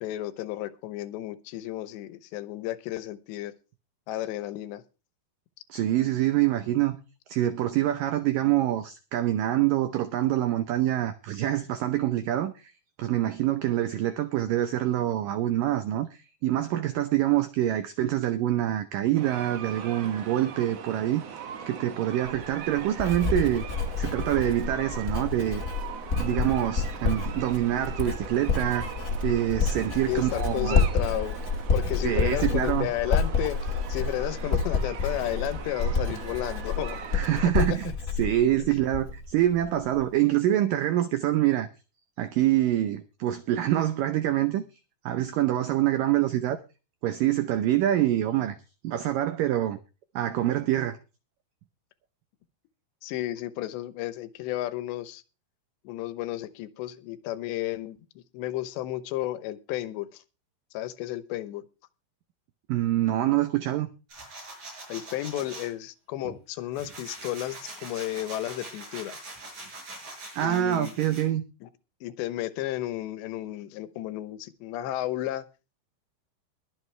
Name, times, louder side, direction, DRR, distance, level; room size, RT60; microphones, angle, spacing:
voice 1, 0.0-3.5 4.1-4.8 30.1-31.4 31.7-37.0 37.7-37.8 53.0-55.2 55.8-60.2 60.7-61.7 64.9-69.2 70.4-71.0 71.6-71.7 72.0-75.5, left 14 dB, 80° left, 3.1 m, -33 dB
voice 2, 5.7-7.0 7.3-12.7 13.0-23.6 24.0-25.6 26.1-28.9 29.2-30.8 32.0-32.9 37.1-37.9 38.2-41.7 42.2-44.6 45.1-46.6 47.0-48.6 48.8-49.8 50.2-51.0 62.7-63.9 70.3-71.4, right 13 dB, 85° right, 1.9 m, -25 dB
sound 1, 19.1-37.5, right 7 dB, 65° right, 1.6 m, -40 dB
Writing, 22.3-39.3 39.6-40.0, left 4 dB, 50° left, 0.9 m, -29 dB
sound 2, 64.1-65.7 66.2-71.2, right 2 dB, 40° right, 7.6 m, -43 dB
22.0 x 7.8 x 3.3 m
omnidirectional pair, 5.1 m